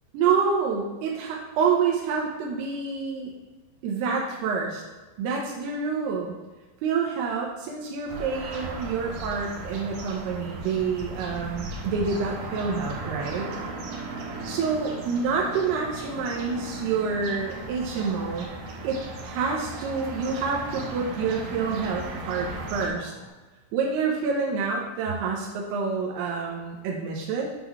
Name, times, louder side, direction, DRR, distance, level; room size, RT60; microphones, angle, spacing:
voice 1, 0.1-3.3 3.8-4.8 5.2-6.3 6.8-13.5 14.3-18.5 18.8-23.1 23.7-27.5, right 5 dB, 85° right, -1 dB, 2.8 m, -27 dB
sound 1, 8.1-22.9, right 2 dB, 65° right, 2.2 m, -37 dB
sound 2, 10.3-23.3, left 2 dB, 65° left, 2.0 m, -46 dB
8.3 x 3.8 x 5.9 m, 1.2 s
omnidirectional pair, 4.7 m